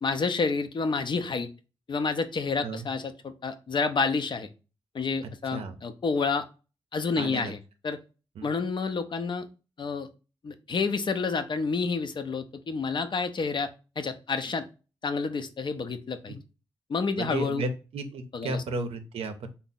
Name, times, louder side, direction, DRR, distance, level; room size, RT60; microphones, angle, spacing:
voice 1, 0.0-1.5 1.9-4.5 4.9-6.4 6.9-7.6 7.8-8.0 8.4-9.5 9.8-10.1 10.4-13.7 14.0-14.7 15.0-16.4 16.9-17.6 18.3-18.6, left 4 dB, 50° left, 8 dB, 0.5 m, -29 dB
voice 2, 7.2-7.5 8.4-8.5 16.3-16.4 17.2-19.5, right 2 dB, 85° right, 7 dB, 0.5 m, -33 dB
3.5 x 2.0 x 4.0 m, 0.32 s
cardioid pair, 55°, 10 cm